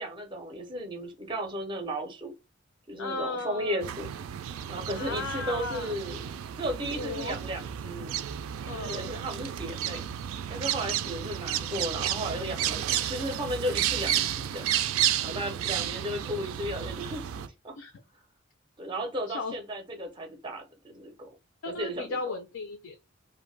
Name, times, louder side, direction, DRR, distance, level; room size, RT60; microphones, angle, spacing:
voice 1, 0.0-2.3 2.9-4.1 4.7-6.2 6.6-8.1 8.7-10.0 10.5-14.7 15.2-17.8 18.8-21.3 21.7-22.2, equal, 25° right, 0.5 m, -35 dB
voice 2, 3.0-3.9 4.9-5.9 6.8-7.4 8.7-9.2 17.8-17.9 19.3-19.5 21.6-23.1, left 3 dB, 70° left, 0.4 m, -36 dB
sound 1, 3.8-17.5, right 10 dB, 85° right, 0.3 m, -32 dB
2.4 x 2.1 x 3.2 m
head